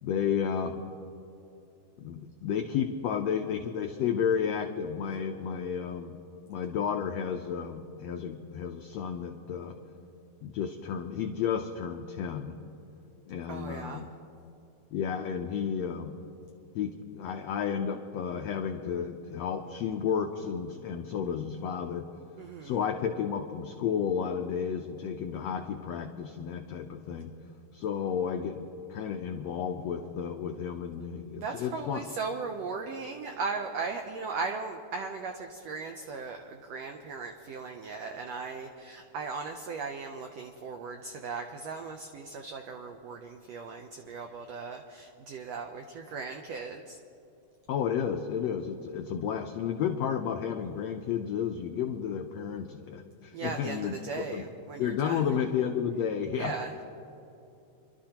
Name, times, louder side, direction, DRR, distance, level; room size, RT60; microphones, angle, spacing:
voice 1, 0.0-0.9 2.0-6.2 6.5-9.8 10.4-12.6 13.3-14.1 14.9-16.2 16.7-22.1 22.6-27.3 27.7-32.0 47.7-53.9 54.3-54.4 54.8-56.5, left 7 dB, 90° left, 4 dB, 1.4 m, -32 dB
voice 2, 13.5-14.1 22.4-22.8 31.4-47.0 53.3-55.3 56.3-56.8, right 4 dB, 90° right, 4 dB, 1.4 m, -37 dB
28.0 x 12.0 x 2.9 m, 2.8 s
omnidirectional pair, 3.8 m